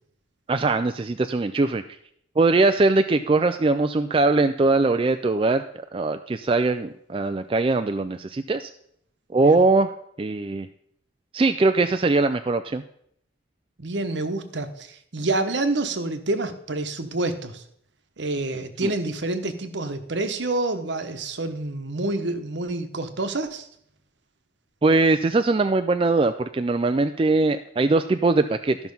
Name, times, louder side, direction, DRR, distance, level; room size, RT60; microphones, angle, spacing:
voice 1, 0.5-1.8 2.4-8.7 9.3-9.9 10.2-10.7 11.3-12.8 18.8-18.9 24.8-28.9, right 3 dB, 25° right, 8 dB, 0.3 m, -21 dB
voice 2, 13.8-17.6 18.2-23.7, right 2 dB, 65° right, 9 dB, 1.0 m, -28 dB
13.0 x 5.9 x 5.4 m, 0.69 s
head